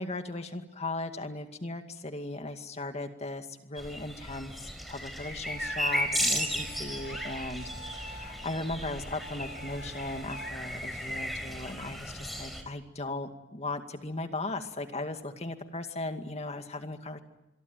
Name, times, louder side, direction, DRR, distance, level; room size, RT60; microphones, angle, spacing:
voice 1, 0.0-4.5 4.9-17.2, left 2 dB, 35° left, 7 dB, 2.2 m, -37 dB
sound 1, 3.8-12.6, equal, ahead, 4.6 m, -35 dB
Bowed string instrument, 5.5-10.5, equal, 60° left, 2.1 m, -47 dB
26.5 x 23.0 x 9.1 m, 0.95 s
head